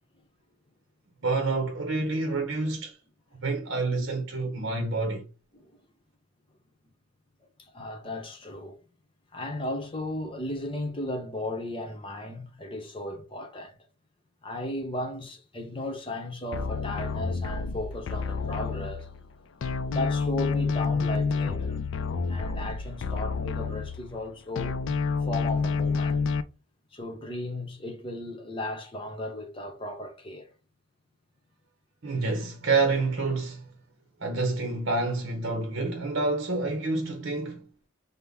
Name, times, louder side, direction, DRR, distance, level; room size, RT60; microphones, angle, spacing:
voice 1, 1.2-3.0 3.4-5.3 32.0-33.7 34.2-37.7, right 3 dB, 60° right, 0.8 m, -28 dB
voice 2, 7.6-8.8 9.3-13.8 14.4-19.1 19.7-21.8 22.3-24.8 25.2-26.2 26.9-30.5, left 1 dB, 25° left, 0.8 m, -35 dB
sound 1, 16.5-19.3 19.6-24.3 24.6-26.4, left 4 dB, 65° left, 0.4 m, -29 dB
5.6 x 2.1 x 3.5 m
head